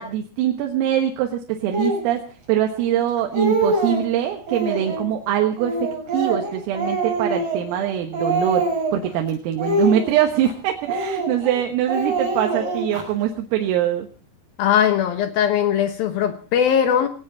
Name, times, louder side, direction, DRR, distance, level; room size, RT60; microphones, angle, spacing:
voice 1, 0.0-14.1, right 11 dB, 90° right, 4.1 m, -23 dB
Speech, 1.7-2.0 2.8-2.9 3.2-4.1 4.5-5.1 5.6-7.9 8.1-9.1 9.6-10.5 10.9-11.6 11.9-13.0, right 2 dB, 35° right, 7.4 m, -24 dB
voice 2, 14.6-17.1, left 9 dB, 90° left, 2.1 m, -19 dB
19.5 x 18.0 x 4.1 m
omnidirectional pair, 5.9 m